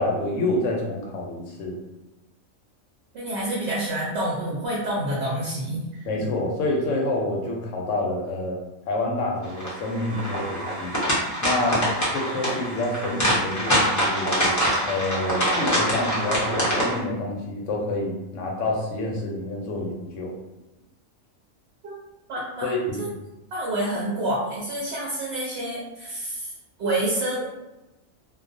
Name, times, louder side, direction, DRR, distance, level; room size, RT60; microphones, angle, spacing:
voice 1, 0.0-1.8 6.0-8.6 8.9-11.0 11.4-11.9 12.1-14.5 14.8-20.3 22.6-23.0, left 2 dB, 70° left, -1 dB, 0.9 m, -27 dB
voice 2, 3.1-6.1 21.8-21.9 22.3-22.7 23.0-23.1 23.5-26.5 26.8-27.5, right 1 dB, 60° right, -5 dB, 0.7 m, -28 dB
sound 1, 9.6-17.0, equal, 25° left, 0.4 m, -24 dB
2.3 x 2.2 x 2.5 m, 0.99 s
omnidirectional pair, 1.4 m